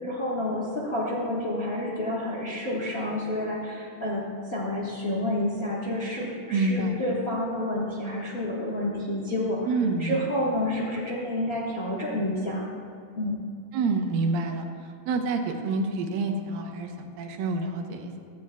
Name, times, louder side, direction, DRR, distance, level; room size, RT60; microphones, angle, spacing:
voice 1, 0.0-4.2 4.5-12.6 13.1-13.3, left 1 dB, 50° left, -5 dB, 1.0 m, -29 dB
voice 2, 6.5-7.0 9.7-10.3 13.7-14.7 15.1-18.2, right 3 dB, 80° right, 4 dB, 2.6 m, -27 dB
16.0 x 14.5 x 2.3 m, 2.3 s
omnidirectional pair, 4.1 m